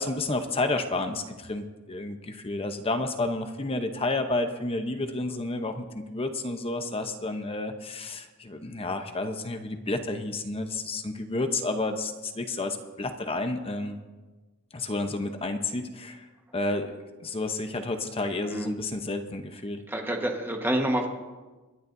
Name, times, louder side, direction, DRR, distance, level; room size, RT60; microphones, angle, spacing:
voice 1, 0.0-14.0 14.7-16.3 16.5-19.8, left 2 dB, 25° left, 7 dB, 0.8 m, -31 dB
voice 2, 18.5-18.8 19.9-21.1, right 1 dB, 10° right, 2 dB, 1.3 m, -28 dB
24.5 x 11.0 x 2.7 m, 1.2 s
head